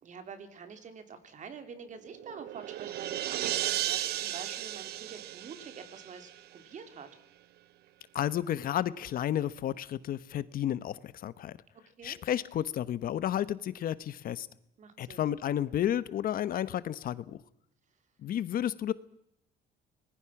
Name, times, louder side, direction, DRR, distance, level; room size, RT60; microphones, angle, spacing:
voice 1, 0.0-7.1 12.0-12.2 14.8-15.3, right 6 dB, 45° right, 3.4 m, -46 dB
sound 1, 2.0-6.6, right 14 dB, 70° right, 0.9 m, -35 dB
voice 2, 8.1-11.6 12.0-14.5 15.0-17.4 18.2-18.9, left 11 dB, 60° left, 1.0 m, -32 dB
25.5 x 20.0 x 6.0 m
cardioid pair, 110°, 17 cm